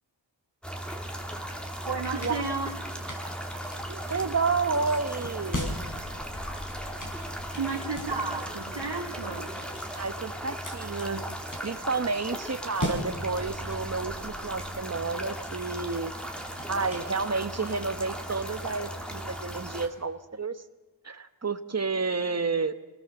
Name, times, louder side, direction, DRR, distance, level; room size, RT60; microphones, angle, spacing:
sound 1, 0.6-19.9, right 1 dB, ahead, 2.9 m, -37 dB
voice 1, 1.8-2.7 7.5-9.5, right 4 dB, 70° right, -3 dB, 3.1 m, -32 dB
sound 2, 1.9-17.7, left 1 dB, 40° left, 5.8 m, -41 dB
sound 3, 3.9-9.9, equal, 55° left, 5.3 m, -54 dB
voice 2, 3.9-5.7 9.9-11.2 11.6-16.1 16.7-20.6 21.0-22.7, right 4 dB, 35° right, 10 dB, 1.1 m, -30 dB
26.0 x 18.5 x 7.0 m, 1.1 s
wide cardioid pair, 50°, 45 cm